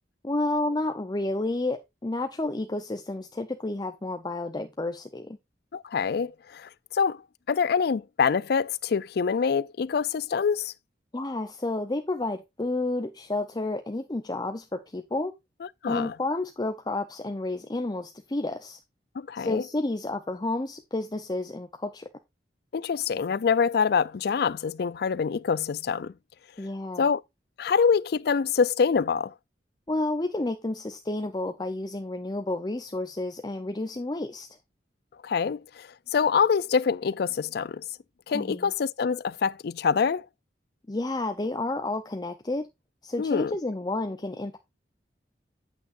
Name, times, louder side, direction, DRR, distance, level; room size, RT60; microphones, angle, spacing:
voice 1, 0.2-5.4 11.1-15.3 15.9-18.8 19.4-22.1 26.6-27.1 29.9-34.5 38.3-38.7 40.9-42.7 43.0-44.6, left 2 dB, 25° left, 0.6 m, -30 dB
voice 2, 5.7-7.2 7.5-10.7 15.6-16.1 19.2-19.6 22.7-26.1 27.0-27.2 27.6-29.3 35.2-37.8 38.3-40.3 43.2-43.5, left 6 dB, 60° left, 0.4 m, -25 dB
8.6 x 8.5 x 2.5 m
head